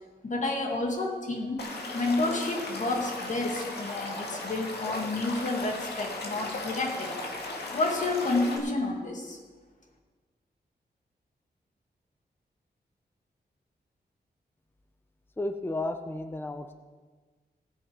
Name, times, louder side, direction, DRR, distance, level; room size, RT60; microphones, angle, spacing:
voice 1, 0.2-1.7 1.9-7.2 7.7-9.4, left 2 dB, 45° left, 1 dB, 2.1 m, -30 dB
Stream / Liquid, 1.6-8.6, left 2 dB, 75° left, 2.0 m, -37 dB
voice 2, 15.4-16.7, left 2 dB, 15° left, 7 dB, 0.6 m, -33 dB
17.5 x 7.1 x 5.1 m, 1.4 s
wide cardioid pair, 145°, 17 cm